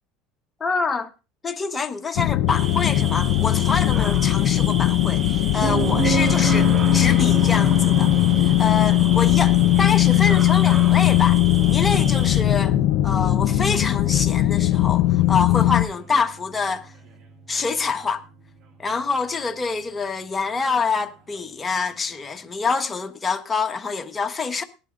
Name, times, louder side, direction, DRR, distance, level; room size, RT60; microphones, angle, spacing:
voice 1, 0.6-1.1 1.4-8.1 8.4-12.8 13.0-16.9 17.5-18.2 18.8-24.6, left 4 dB, 20° left, 1.2 m, -26 dB
sound 1, 2.2-15.8, left 15 dB, 65° left, 0.5 m, -19 dB
sound 2, 2.5-12.4, right 4 dB, 20° right, 0.9 m, -34 dB
sound 3, 5.6-19.5 21.7-21.8, right 5 dB, 55° right, 2.1 m, -32 dB
18.0 x 11.0 x 2.6 m
supercardioid pair, 120°, 0 cm